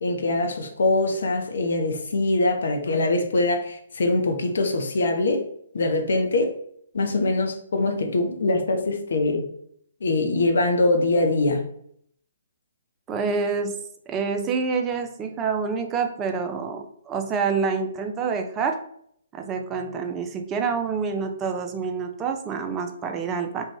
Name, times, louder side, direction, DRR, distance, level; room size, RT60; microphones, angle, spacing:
voice 1, 0.0-5.4 5.7-6.5 6.9-9.5 10.0-11.6, left 2 dB, 60° left, 4 dB, 0.5 m, -23 dB
voice 2, 13.1-13.8 14.1-18.8 19.3-23.6, right 5 dB, 20° right, 5 dB, 0.3 m, -27 dB
2.4 x 2.2 x 3.1 m, 0.67 s
figure-of-eight pair, 130°, 0 cm